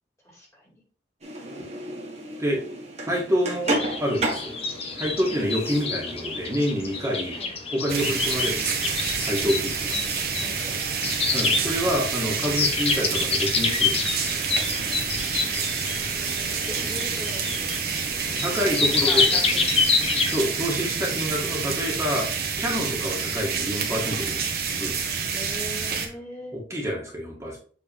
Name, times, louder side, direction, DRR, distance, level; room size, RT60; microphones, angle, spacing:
voice 1, 0.2-0.7 7.3-7.5 10.3-11.0 15.4-15.7 16.7-17.9 18.2-20.0 25.3-26.6, equal, 15° left, -3 dB, 2.2 m, -40 dB
sound 1, 1.2-7.5, right 1 dB, 40° right, 1.6 m, -33 dB
voice 2, 3.1-4.5 4.9-7.4 7.7-8.7 9.2-10.0 11.3-14.2 18.4-19.3 20.3-22.3 22.6-24.5 24.8-25.1 26.5-27.6, equal, 15° right, -4 dB, 1.7 m, -27 dB
sound 2, 3.7-20.8, left 4 dB, 35° left, 1.1 m, -28 dB
sound 3, 7.9-26.1, right 6 dB, 60° right, 1.3 m, -28 dB
7.6 x 4.0 x 3.5 m, 0.43 s
head